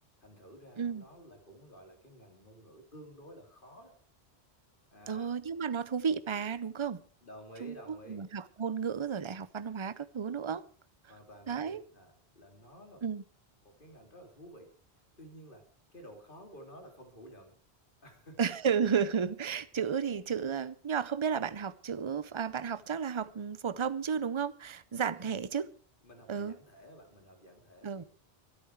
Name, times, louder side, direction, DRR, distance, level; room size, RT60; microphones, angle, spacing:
voice 1, 0.2-4.0 4.9-5.3 7.2-8.2 11.1-13.0 13.6-14.7 15.2-15.6 15.9-17.5 18.0-18.4 25.2-25.4 26.0-28.1, equal, 50° left, 4 dB, 3.4 m, -52 dB
voice 2, 5.1-7.0 7.6-10.6 11.5-11.8 13.0-13.2 18.4-25.7 26.3-26.5 27.8-28.0, right 7 dB, 30° right, 16 dB, 0.7 m, -33 dB
24.0 x 8.7 x 4.6 m, 0.40 s
omnidirectional pair, 1.1 m